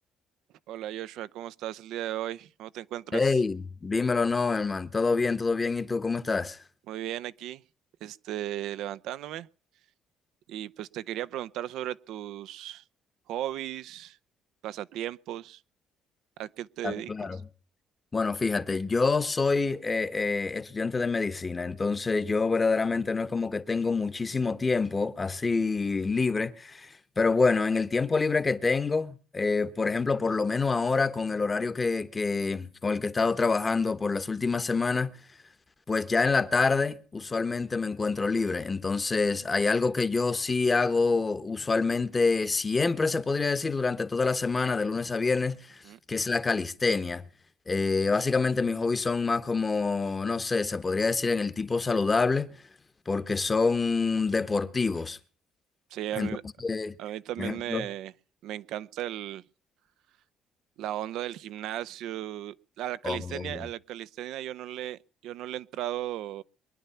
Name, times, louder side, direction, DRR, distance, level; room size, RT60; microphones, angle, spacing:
voice 1, 0.7-3.3 6.9-7.6 8.0-9.5 10.5-12.8 13.3-14.2 14.6-15.6 16.4-17.1 45.8-46.0 55.9-56.4 57.0-58.1 58.4-59.4 60.8-66.4, right 13 dB, 75° right, 0.7 m, -36 dB
voice 2, 3.1-6.6 16.8-17.4 18.1-35.1 35.9-45.8 46.1-47.2 47.7-52.6 53.1-55.2 56.1-56.3 56.6-56.9 57.4-57.8 63.0-63.7, left 4 dB, 20° left, 1.1 m, -27 dB
23.0 x 10.5 x 5.7 m
cardioid pair, 135°, 0 cm